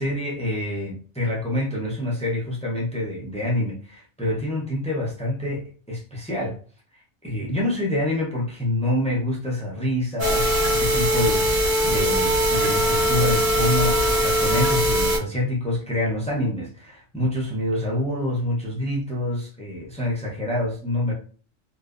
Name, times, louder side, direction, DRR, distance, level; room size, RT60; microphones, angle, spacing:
voice 1, 0.0-6.6 7.2-21.1, left 1 dB, 10° left, -4 dB, 0.3 m, -26 dB
sound 1, 10.2-15.2, equal, 60° right, 1.0 m, -21 dB
2.5 x 2.2 x 2.4 m, 0.41 s
omnidirectional pair, 1.4 m